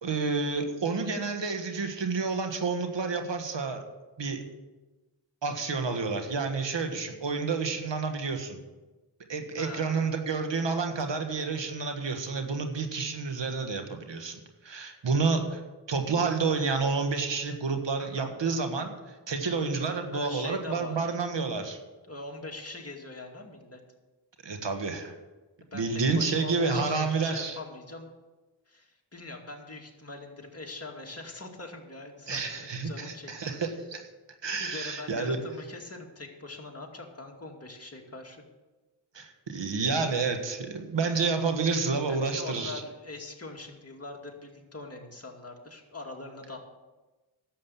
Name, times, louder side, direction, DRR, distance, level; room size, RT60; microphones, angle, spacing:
voice 1, 0.0-3.8 4.2-4.4 5.4-8.6 9.3-14.3 14.6-15.6 15.9-21.8 24.4-25.1 25.7-27.6 32.3-34.1 34.4-35.4 39.1-42.8, right 4 dB, 70° right, 5 dB, 1.6 m, -29 dB
voice 2, 9.6-10.1 18.0-18.3 20.1-21.1 22.1-23.8 25.7-28.1 28.7-33.3 34.6-38.4 42.1-46.6, left 2 dB, 30° left, 1 dB, 2.3 m, -42 dB
11.5 x 7.7 x 7.1 m, 1.2 s
cardioid pair, 50°, 45 cm